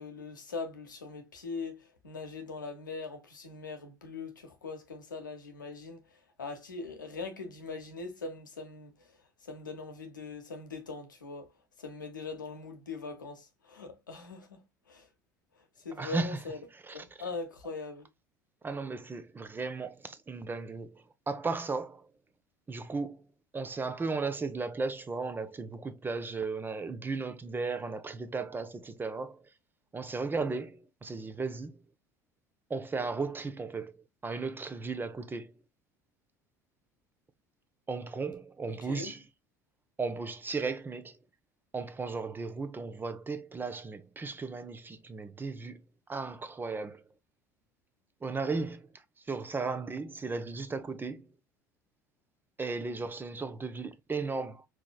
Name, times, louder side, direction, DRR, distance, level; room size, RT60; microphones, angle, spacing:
voice 1, 0.0-6.0 6.4-8.9 9.4-11.5 11.8-14.6 14.9-15.1 15.8-16.6 16.9-18.1 38.9-39.1, left 3 dB, 85° left, 0.8 m, -41 dB
voice 2, 15.9-16.4 16.7-17.3 18.6-22.1 22.7-23.2 23.5-29.5 29.9-31.8 32.7-34.0 34.2-35.5 37.9-39.2 40.0-41.2 41.7-45.8 46.1-47.0 48.2-48.9 49.3-51.3 52.6-54.7, right 4 dB, 20° right, 0.6 m, -35 dB
4.7 x 3.1 x 2.3 m
figure-of-eight pair, 65°, 10 cm